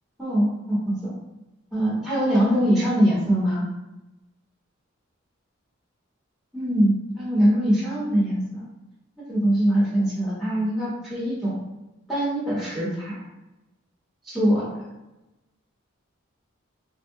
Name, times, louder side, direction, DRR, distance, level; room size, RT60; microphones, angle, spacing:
voice 1, 0.2-1.1 1.7-3.6 6.5-8.6 9.3-11.6 12.1-13.2 14.3-14.6, equal, ahead, -10 dB, 1.0 m, -22 dB
3.4 x 2.3 x 2.6 m, 1.0 s
head